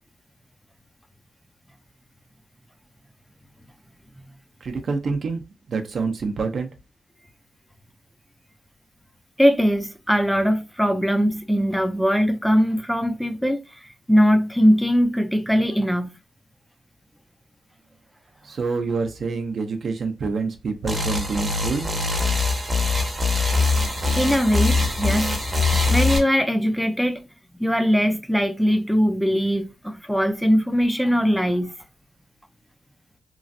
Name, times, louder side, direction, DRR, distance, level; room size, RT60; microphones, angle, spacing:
voice 1, 4.6-5.4 5.7-6.7 18.4-21.8, right 4 dB, 55° right, 0.6 m, -26 dB
voice 2, 9.4-13.6 14.1-16.1 24.1-25.3 25.9-27.2 27.6-31.8, equal, ahead, 0.4 m, -20 dB
sound 1, 20.9-26.2, left 3 dB, 20° right, 0.7 m, -22 dB
3.1 x 2.4 x 2.5 m
wide cardioid pair, 145°, 0 cm